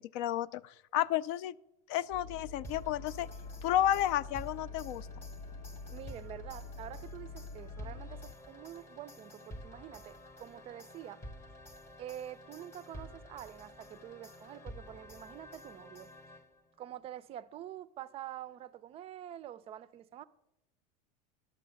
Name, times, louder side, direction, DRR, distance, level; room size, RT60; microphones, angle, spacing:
voice 1, 0.1-1.5 1.9-3.3 3.6-5.1, left 12 dB, 60° left, 0.4 m, -31 dB
sound 1, 2.1-8.3, left 3 dB, 85° left, 1.0 m, -46 dB
sound 2, 2.6-16.8, left 1 dB, 15° left, 0.8 m, -51 dB
voice 2, 5.9-11.2 12.0-16.1 16.8-20.2, right 11 dB, 30° right, 0.4 m, -46 dB
11.5 x 6.3 x 6.9 m
supercardioid pair, 140°, 19 cm